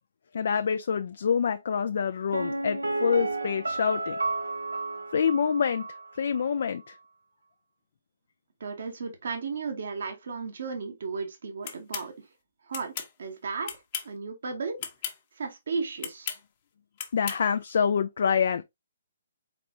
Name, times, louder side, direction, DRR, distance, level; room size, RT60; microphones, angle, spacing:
voice 1, 0.3-4.2 5.1-5.9 6.2-7.0 17.1-18.6, left 7 dB, 55° left, 0.3 m, -26 dB
Piano, 2.3-6.1 6.4-6.5, right 2 dB, 80° right, 0.6 m, -32 dB
voice 2, 8.6-12.3 12.6-13.7 14.0-14.8 15.4-16.4, right 4 dB, 60° right, 1.0 m, -34 dB
sound 1, 11.6-12.1 12.7-13.1 13.6-14.2 14.8-15.2 16.0-16.4 17.0-17.4, left 8 dB, 40° left, 0.9 m, -35 dB
4.2 x 4.1 x 2.7 m
figure-of-eight pair, 130°, 0 cm